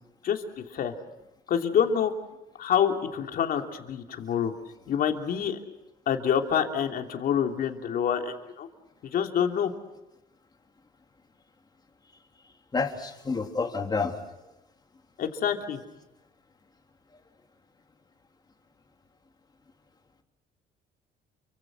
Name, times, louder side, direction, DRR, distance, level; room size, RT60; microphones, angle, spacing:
voice 1, 1.5-2.1 2.6-4.5 4.9-5.6 6.1-8.7 9.0-9.7 15.2-15.8, left 8 dB, 60° left, 4 dB, 3.1 m, -26 dB
voice 2, 12.7-14.1, left 4 dB, 25° left, 4 dB, 3.0 m, -29 dB
29.5 x 24.5 x 6.2 m, 0.96 s
cardioid pair, 110°, 17 cm